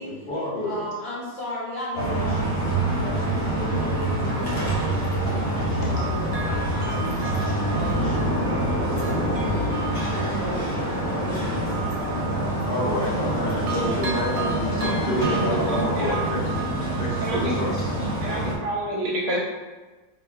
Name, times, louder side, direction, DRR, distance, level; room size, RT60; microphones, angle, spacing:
voice 1, 0.0-0.9 4.6-4.7 12.6-16.6 17.0-17.8, left 1 dB, 40° left, -6 dB, 0.9 m, -29 dB
voice 2, 0.6-11.7, left 1 dB, 90° left, -7 dB, 1.9 m, -37 dB
sound 1, 2.0-18.6, right 1 dB, 60° left, 1.2 m, -26 dB
Bell, 3.7-5.6 5.9-13.4 13.7-18.3 18.7-18.8, right 5 dB, 80° right, 0.6 m, -38 dB
voice 3, 15.0-16.2 17.2-17.5 18.2-19.4, right 1 dB, 60° right, -3 dB, 0.9 m, -28 dB
4.3 x 2.9 x 2.4 m, 1.3 s
omnidirectional pair, 2.0 m